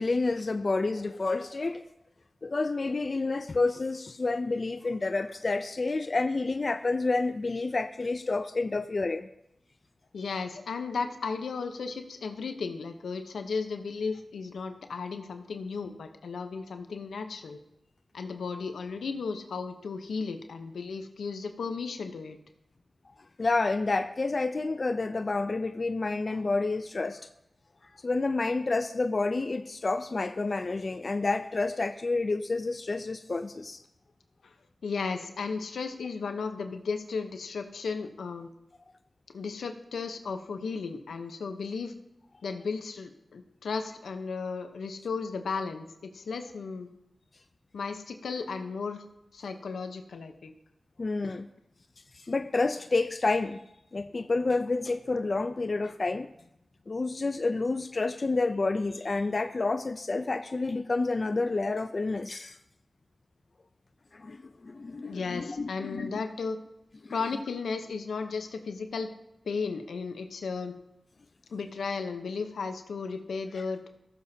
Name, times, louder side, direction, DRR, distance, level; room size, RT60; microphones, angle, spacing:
voice 1, 0.0-1.8 2.4-9.3 23.4-27.2 28.0-33.8 51.0-51.5 52.1-53.6 53.9-56.3 56.9-62.6 64.1-66.1 67.0-67.2 73.5-73.6, left 3 dB, 50° left, 9 dB, 0.5 m, -29 dB
voice 2, 10.1-17.6 18.1-22.4 34.4-34.5 34.8-38.5 39.3-41.9 42.4-46.9 47.7-49.1 49.3-50.5 51.2-51.4 65.1-66.6 67.1-69.1 69.4-70.7 71.5-73.8, left 4 dB, 90° left, 7 dB, 0.9 m, -35 dB
18.5 x 7.1 x 2.8 m, 0.84 s
cardioid pair, 40°, 0 cm